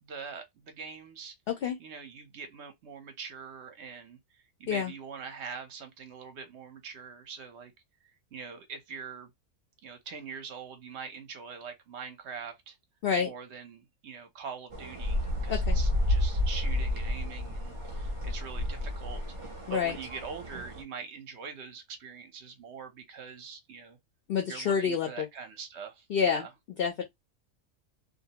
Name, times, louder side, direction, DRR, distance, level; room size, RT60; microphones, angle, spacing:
voice 1, 0.0-1.3 1.8-7.7 8.0-9.3 9.8-12.8 13.2-19.2 19.7-24.0 24.5-26.5, right 6 dB, 60° right, 0.9 m, -43 dB
sound 1, 14.7-20.8, left 1 dB, 35° right, 0.5 m, -31 dB
voice 2, 24.3-25.3 26.1-26.5 26.8-27.0, left 7 dB, 60° left, 0.6 m, -28 dB
2.6 x 2.0 x 2.8 m
omnidirectional pair, 1.5 m